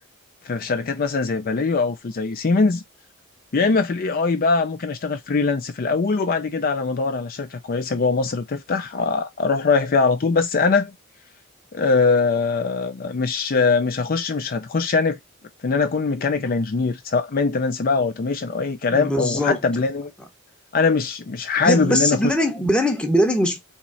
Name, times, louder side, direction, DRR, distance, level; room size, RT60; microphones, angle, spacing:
voice 1, 0.4-2.8 3.5-10.9 11.7-15.2 15.6-20.1 20.7-22.3, left 4 dB, 45° left, 0.4 m, -22 dB
voice 2, 18.9-19.6 21.6-23.6, equal, 5° left, 0.8 m, -21 dB
3.6 x 3.0 x 4.1 m
head